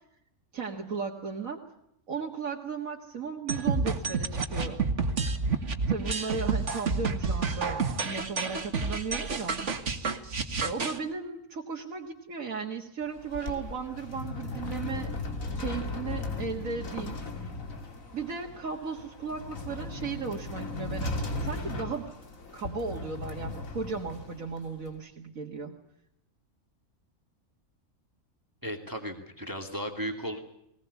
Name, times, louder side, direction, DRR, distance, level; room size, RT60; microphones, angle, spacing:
voice 1, 0.5-1.6 2.1-4.8 5.9-9.6 10.6-15.1 15.6-17.2 18.1-22.1 22.5-25.8, right 5 dB, 80° right, 0 dB, 2.2 m, -36 dB
sound 1, 3.5-11.0, right 4 dB, 60° right, 2.0 m, -29 dB
Books cart, 13.0-24.9, left 2 dB, 75° left, 2.7 m, -37 dB
voice 2, 28.6-30.4, equal, 15° right, 5 dB, 2.3 m, -35 dB
20.0 x 20.0 x 8.2 m, 0.79 s
omnidirectional pair, 1.4 m